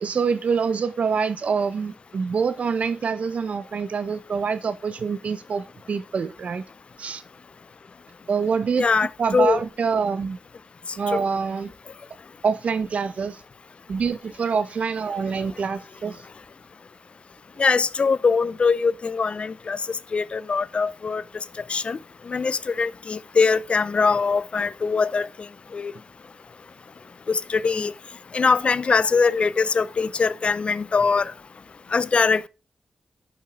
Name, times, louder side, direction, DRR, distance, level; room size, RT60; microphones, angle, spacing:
voice 1, 0.0-6.6 7.0-7.2 8.3-8.9 9.2-10.4 11.0-11.7 12.4-13.4 13.9-16.2, right 5 dB, 65° right, 1.0 m, -25 dB
voice 2, 8.8-9.6 11.1-11.2 17.6-19.8 20.1-21.2 21.7-22.0 22.3-25.3 25.7-25.9 27.3-27.9 28.3-31.3 31.9-32.5, left 5 dB, 50° left, 0.6 m, -22 dB
11.5 x 5.5 x 3.5 m
cardioid pair, 50°, 2 cm